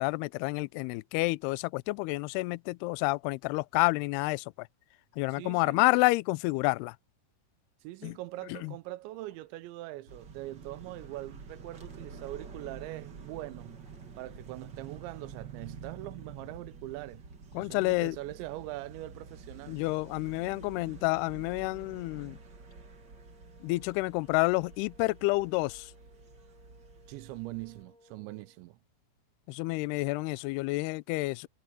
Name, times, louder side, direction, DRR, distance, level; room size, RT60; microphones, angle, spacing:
voice 1, 0.0-4.7 5.2-7.0 8.0-8.1 8.5-8.7 17.5-18.2 19.7-22.4 23.6-25.9 29.5-31.5, left 23 dB, 85° left, 2.4 m, -29 dB
voice 2, 5.3-5.9 7.8-13.8 14.2-17.2 17.6-19.8 27.1-28.8, right 17 dB, 85° right, 3.1 m, -42 dB
sound 1, 6.5-7.0 9.0-9.7 11.6-12.2 13.7-14.4, left 7 dB, 50° left, 6.7 m, -68 dB
sound 2, 10.1-27.8, right 5 dB, 50° right, 1.3 m, -49 dB
sound 3, 19.9-28.6, left 1 dB, 10° left, 4.3 m, -62 dB
omnidirectional pair, 5.2 m